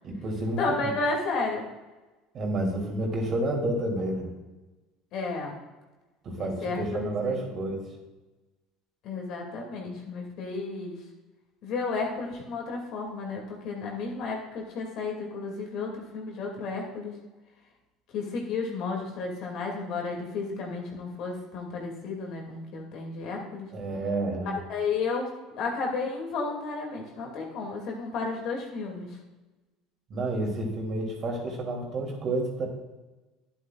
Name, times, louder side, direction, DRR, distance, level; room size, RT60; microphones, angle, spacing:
voice 1, 0.0-0.9 2.3-4.3 6.2-7.8 23.7-24.5 30.1-32.7, right 2 dB, 45° right, 0 dB, 2.9 m, -30 dB
voice 2, 0.6-1.7 5.1-5.6 6.4-7.5 9.0-11.0 11.6-17.2 18.1-23.7 24.7-29.2, left 4 dB, 60° left, 0 dB, 2.5 m, -32 dB
10.5 x 9.3 x 2.5 m, 1.2 s
hypercardioid pair, 85°, 0 cm